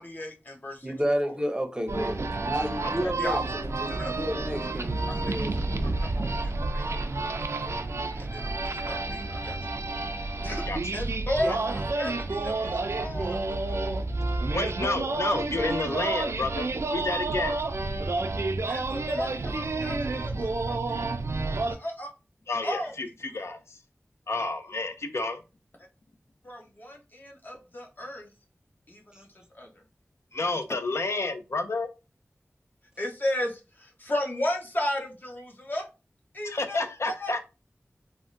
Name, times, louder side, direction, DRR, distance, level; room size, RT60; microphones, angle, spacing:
voice 1, 0.0-0.8 1.2-1.3 3.2-3.4 3.9-4.1 6.0-7.7 8.2-9.6 10.4-13.4 18.7-21.0 21.7-22.1 22.6-22.9 26.4-28.3 28.9-29.3 29.5-29.7 33.0-35.9 36.3-36.8 37.2-37.3, left 1 dB, 40° left, 1 dB, 0.8 m, -34 dB
voice 2, 0.8-5.7 19.8-19.9 29.1-29.2, equal, 15° right, 5 dB, 0.6 m, -31 dB
sound 1, 1.9-21.8, right 3 dB, 65° right, 0.3 m, -30 dB
voice 3, 14.5-17.6 22.5-23.8 24.3-25.4 30.3-31.9 36.4-37.4, left 3 dB, 65° left, 7 dB, 0.4 m, -30 dB
3.4 x 2.1 x 2.5 m, 0.29 s
wide cardioid pair, 70°, 5 cm